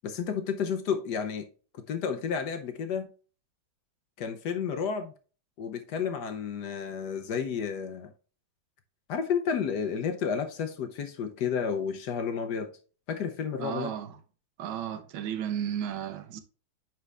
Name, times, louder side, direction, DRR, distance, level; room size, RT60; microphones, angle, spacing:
voice 1, 0.0-1.5 1.9-3.1 4.2-5.1 5.6-8.1 9.1-12.7 13.1-13.9, left 6 dB, 65° left, 1.2 m, -31 dB
voice 2, 13.6-14.2 14.6-16.4, right 9 dB, 80° right, 1.6 m, -34 dB
9.7 x 4.4 x 2.4 m
omnidirectional pair, 2.2 m